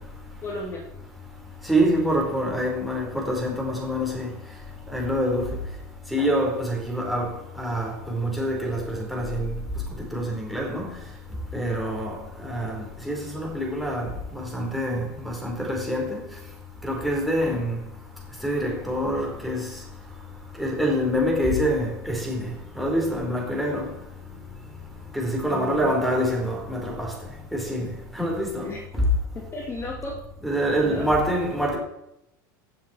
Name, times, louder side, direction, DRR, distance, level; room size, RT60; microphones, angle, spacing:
voice 1, 0.4-0.8 25.5-25.9 28.5-28.8 29.3-30.2 30.8-31.1, left 2 dB, 25° left, 2.4 m, -34 dB
voice 2, 1.7-4.3 4.9-5.5 6.1-7.3 7.6-9.5 10.1-10.9 11.5-14.1 14.3-16.2 16.8-17.8 18.4-19.6 20.6-22.5 22.7-23.9 25.1-27.1 27.5-27.9 28.1-28.7 28.9-29.0 30.4-31.8, equal, ahead, 4.4 m, -26 dB
15.0 x 7.5 x 4.5 m
hypercardioid pair, 95°, 11 cm